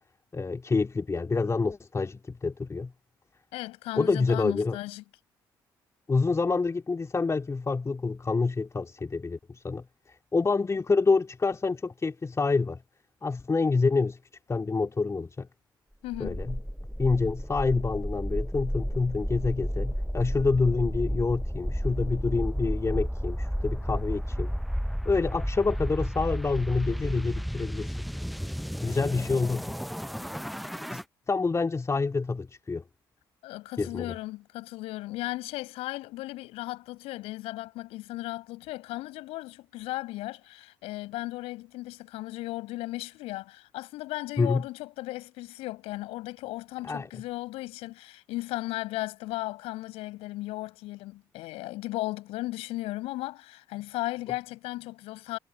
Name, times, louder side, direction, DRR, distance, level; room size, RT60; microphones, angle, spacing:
voice 1, 0.3-2.9 3.9-4.8 6.1-9.8 10.3-12.8 13.2-14.2 14.5-15.5 16.2-16.6 17.0-24.5 25.0-27.9 28.8-29.7 30.9-31.0 31.3-32.8 33.8-34.1 44.4-44.6 46.8-47.1, left 4 dB, 25° left, 3.0 m, -27 dB
voice 2, 3.5-5.0 16.0-16.4 33.4-55.4, left 18 dB, 65° left, 6.1 m, -36 dB
sound 1, 16.1-31.0, equal, ahead, 0.8 m, -32 dB
figure-of-eight pair, 45°, 11 cm